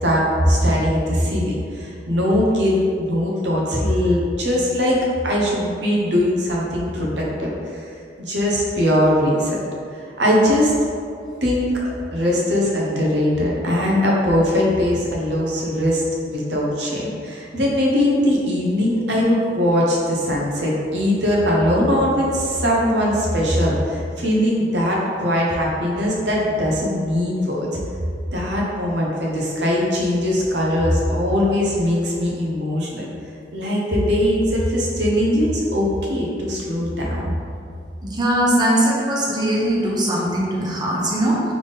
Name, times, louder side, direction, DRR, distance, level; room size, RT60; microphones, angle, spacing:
voice 1, 0.0-5.0 5.2-7.8 8.2-9.6 10.2-10.7 11.4-27.8 28.3-33.1 33.5-37.3, left 1 dB, 80° right, -3 dB, 0.9 m, -20 dB
voice 2, 38.0-41.4, right 1 dB, 25° right, -4 dB, 0.8 m, -20 dB
4.1 x 3.5 x 3.5 m, 2.4 s
head